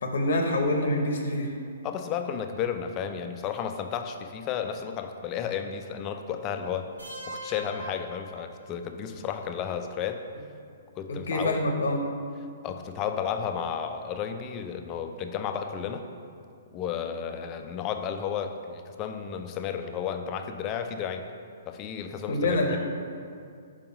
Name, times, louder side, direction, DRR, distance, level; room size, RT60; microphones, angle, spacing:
voice 1, 0.0-1.5 11.1-12.0 22.3-22.8, left 1 dB, 65° left, 2 dB, 0.8 m, -26 dB
voice 2, 1.8-6.9 7.3-10.2 11.0-11.6 12.6-16.0 16.7-21.3 21.7-22.8, left 8 dB, 30° left, 7 dB, 0.5 m, -33 dB
sound 1, 7.0-8.9, right 1 dB, 90° right, 1.5 m, -41 dB
5.4 x 4.9 x 5.6 m, 2.3 s
figure-of-eight pair, 120°, 0 cm